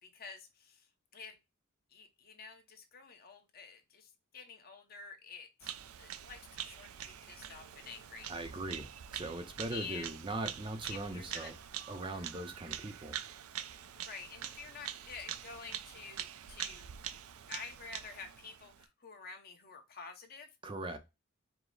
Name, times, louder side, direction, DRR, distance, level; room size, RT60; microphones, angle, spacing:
voice 1, 0.0-1.4 1.9-5.7 6.0-8.3 9.7-10.1 10.9-11.5 14.0-16.9 17.5-20.5, left 5 dB, 45° left, 0.8 m, -49 dB
Bird vocalization bird call bird song, 5.6-18.9, right 10 dB, 80° right, 0.4 m, -45 dB
voice 2, 8.3-11.5 11.9-13.2 20.6-21.0, right 2 dB, 25° right, 0.5 m, -40 dB
4.8 x 2.0 x 3.8 m
head